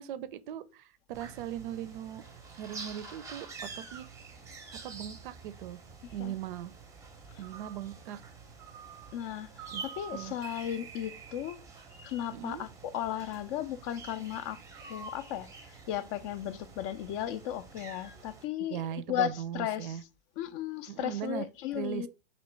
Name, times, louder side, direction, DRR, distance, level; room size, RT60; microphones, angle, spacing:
voice 1, 0.0-2.2 2.6-4.1 4.8-5.8 6.1-6.7 7.4-8.2 9.7-9.8 10.1-10.3 12.3-12.6 18.7-20.0 20.9-21.5 21.7-22.1, right 11 dB, 60° right, 0.5 m, -39 dB
sound 1, 1.1-18.4, right 5 dB, 10° right, 0.6 m, -47 dB
voice 2, 9.1-11.6 12.0-14.6 14.9-18.8 19.1-20.0 20.4-22.1, left 11 dB, 35° left, 0.4 m, -35 dB
3.1 x 3.0 x 4.4 m
hypercardioid pair, 125°, 30 cm